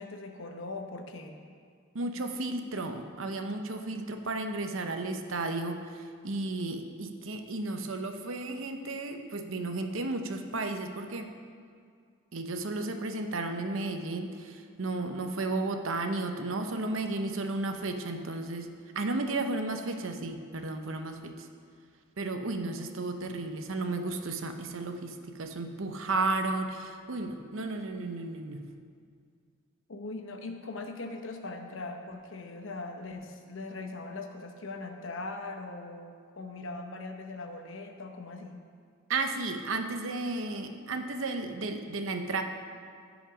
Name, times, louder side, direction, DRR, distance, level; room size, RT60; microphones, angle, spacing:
voice 1, 0.0-1.4 29.9-38.6, left 3 dB, 70° left, 5 dB, 0.9 m, -40 dB
voice 2, 1.9-11.3 12.3-18.7 18.9-21.5 22.2-28.6 39.1-42.4, right 2 dB, 75° right, 6 dB, 0.8 m, -33 dB
15.0 x 5.1 x 5.0 m, 2.2 s
head